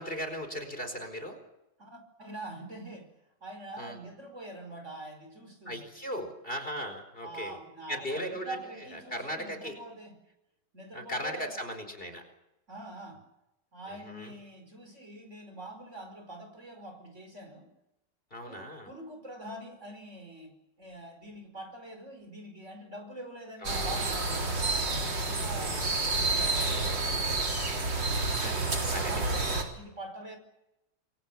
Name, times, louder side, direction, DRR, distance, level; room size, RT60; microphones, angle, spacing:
voice 1, 0.0-1.4 3.8-4.0 5.7-7.6 7.9-8.6 9.1-9.8 10.9-12.2 13.9-14.3 18.3-18.9 23.6-24.0 25.6-25.9 28.1-29.1, equal, 25° left, 6 dB, 4.8 m, -37 dB
voice 2, 1.8-3.1 3.4-5.9 7.2-10.1 10.7-11.6 12.7-13.2 13.7-17.7 18.5-27.3 28.4-30.4, right 2 dB, 35° right, 5 dB, 5.4 m, -44 dB
sound 1, 23.6-29.6, right 3 dB, 70° right, 4.6 m, -29 dB
28.0 x 22.0 x 7.4 m, 0.90 s
omnidirectional pair, 2.1 m